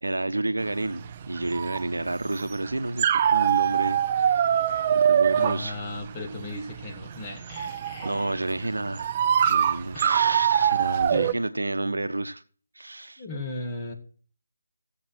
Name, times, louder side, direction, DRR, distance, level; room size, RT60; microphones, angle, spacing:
voice 1, 0.0-4.5 4.9-5.8 8.0-9.1 9.5-12.4 12.7-13.2, right 2 dB, 85° right, 0.9 m, -30 dB
sound 1, 0.6-11.3, right 9 dB, 30° right, 0.4 m, -24 dB
voice 2, 5.3-8.4 9.4-9.8 11.1-11.4 13.2-13.9, left 2 dB, 20° left, 2.1 m, -37 dB
17.0 x 7.7 x 4.4 m
figure-of-eight pair, 155°, 0 cm